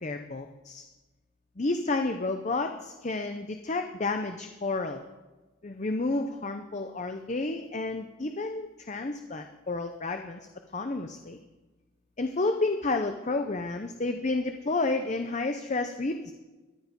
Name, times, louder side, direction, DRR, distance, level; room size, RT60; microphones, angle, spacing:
voice 1, 0.0-0.8 1.6-5.0 5.6-10.4 10.7-11.4 12.2-16.3, left 3 dB, 35° left, 6 dB, 0.6 m, -31 dB
14.0 x 10.5 x 5.2 m, 1.2 s
head